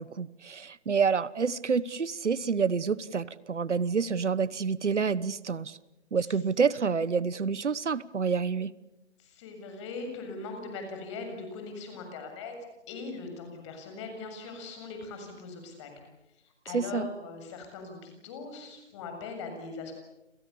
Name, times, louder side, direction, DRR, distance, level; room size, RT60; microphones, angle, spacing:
voice 1, 0.0-5.8 6.1-8.7 16.7-17.1, right 5 dB, 75° right, 19 dB, 1.2 m, -28 dB
voice 2, 9.2-12.5 12.9-16.1 16.4-19.9, left 3 dB, 25° left, 5 dB, 7.3 m, -40 dB
29.5 x 27.0 x 7.0 m, 0.91 s
figure-of-eight pair, 155°, 35 cm